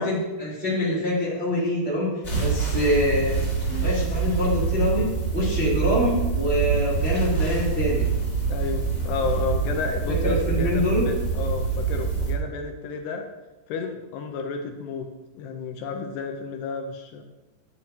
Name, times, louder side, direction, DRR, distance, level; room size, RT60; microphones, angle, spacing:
voice 1, 0.0-2.1 2.4-3.4 3.7-5.1 5.3-8.1 10.2-11.0, left 1 dB, 20° right, -8 dB, 1.6 m, -25 dB
sound 1, 2.2-12.3, right 5 dB, 25° left, 1.4 m, -25 dB
voice 2, 8.5-13.3 13.7-15.1 15.4-17.2, left 5 dB, 80° left, 4 dB, 2.6 m, -31 dB
10.5 x 8.7 x 2.9 m, 1.1 s
omnidirectional pair, 5.0 m